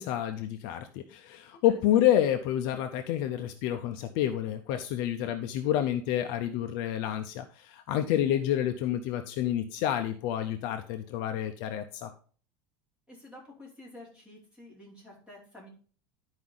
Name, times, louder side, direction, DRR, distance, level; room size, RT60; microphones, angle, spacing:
voice 1, 0.0-12.1, left 11 dB, 45° left, 7 dB, 0.6 m, -29 dB
voice 2, 7.9-8.5 13.1-15.7, left 1 dB, 5° right, -5 dB, 2.8 m, -51 dB
11.5 x 4.8 x 3.9 m, 0.42 s
cardioid pair, 180°, 11 cm